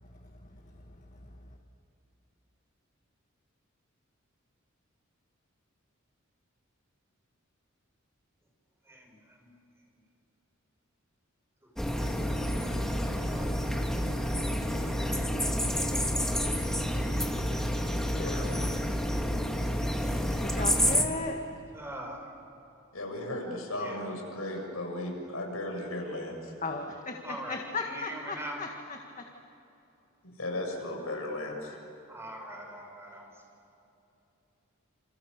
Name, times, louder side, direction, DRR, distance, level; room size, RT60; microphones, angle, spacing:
voice 1, 8.9-9.5 11.8-13.0 13.3-13.7 14.8-15.0 21.7-22.3 23.8-24.0 27.2-28.6 32.1-33.3, right 1 dB, 15° right, 5.3 m, -43 dB
sound 1, 11.8-21.0, equal, 5° left, 2.0 m, -29 dB
voice 2, 18.2-18.7 20.4-20.5 22.9-26.5 30.4-31.8 32.8-32.9, left 1 dB, 85° left, 7.1 m, -36 dB
voice 3, 20.4-21.4 26.6-29.0, left 3 dB, 40° left, 1.8 m, -35 dB
29.0 x 28.5 x 6.8 m
head